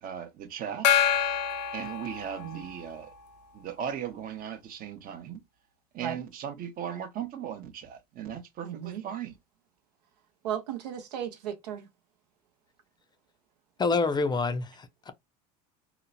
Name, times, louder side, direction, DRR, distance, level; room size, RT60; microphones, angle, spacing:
voice 1, 0.0-0.9 1.7-3.1 3.5-5.4 5.9-9.4, right 9 dB, 45° right, 0.7 m, -37 dB
Gong, 0.8-2.9, left 9 dB, 85° left, 0.5 m, -27 dB
voice 2, 8.6-9.0 10.4-11.9, right 10 dB, 85° right, 0.7 m, -35 dB
voice 3, 13.8-15.1, left 4 dB, 20° left, 0.4 m, -27 dB
2.9 x 2.1 x 2.4 m
hypercardioid pair, 85°, 21 cm